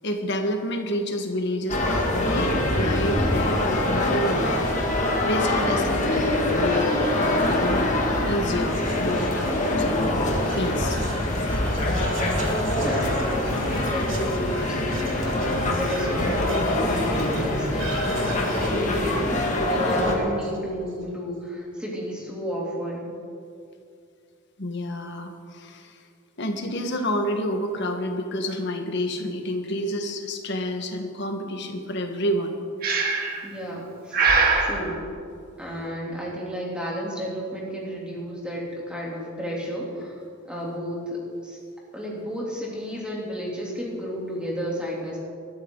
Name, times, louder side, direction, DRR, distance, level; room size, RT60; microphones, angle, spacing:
voice 1, 0.0-4.7 5.2-6.0 6.5-7.9 8.3-10.1 10.5-11.0 24.6-26.1 26.4-32.6, equal, 55° left, 4 dB, 1.6 m, -29 dB
sound 1, 1.7-20.2, left 1 dB, 35° left, 2.0 m, -24 dB
voice 2, 5.5-6.0 12.8-23.1 33.4-34.3 34.6-35.0 35.6-41.6 41.9-45.2, equal, 5° right, -5 dB, 3.3 m, -32 dB
Whispering, 8.4-20.9, right 1 dB, 70° right, 2.5 m, -36 dB
Breathing, 32.8-33.4 34.1-34.7, right 4 dB, 45° right, 2.0 m, -21 dB
20.5 x 13.5 x 4.0 m, 2.4 s
head